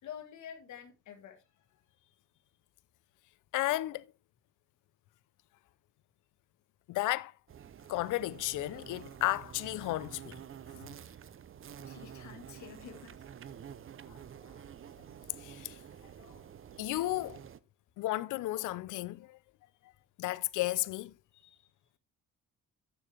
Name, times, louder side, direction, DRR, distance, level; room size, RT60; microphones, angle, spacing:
voice 1, 0.0-2.1 11.8-13.3 21.3-21.7, left 8 dB, 75° left, 1.7 m, -49 dB
voice 2, 3.5-4.0 6.9-7.3 7.9-10.4 15.4-15.7 16.8-17.4 18.0-19.4 20.2-21.1, left 17 dB, 90° left, 0.6 m, -33 dB
sound 1, 7.5-17.6, right 8 dB, 45° right, 0.8 m, -49 dB
12.0 x 7.0 x 3.4 m
cardioid pair, 90°, 30 cm